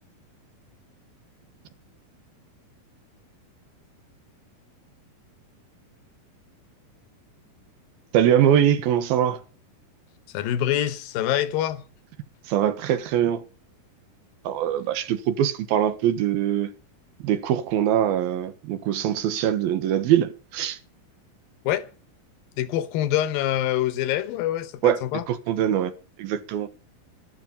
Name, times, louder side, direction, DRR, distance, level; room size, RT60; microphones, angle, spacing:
voice 1, 8.1-9.4 12.5-13.4 14.4-16.7 17.2-20.8 24.8-25.0 25.3-25.9 26.2-26.7, right 10 dB, 90° right, 3.1 m, -22 dB
voice 2, 10.3-11.8 21.6-21.9 22.6-25.2, left 12 dB, 75° left, 2.7 m, -25 dB
12.5 x 12.0 x 5.5 m
omnidirectional pair, 4.2 m